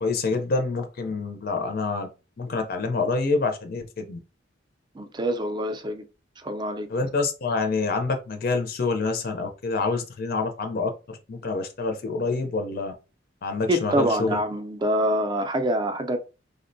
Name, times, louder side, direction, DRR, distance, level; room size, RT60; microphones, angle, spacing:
voice 1, 0.0-2.1 2.4-4.2 6.9-12.9 13.4-14.4, left 3 dB, 50° left, 0.5 m, -27 dB
voice 2, 4.9-6.0 6.4-6.9 13.7-16.2, right 1 dB, 25° right, 0.4 m, -25 dB
3.5 x 2.1 x 2.6 m
head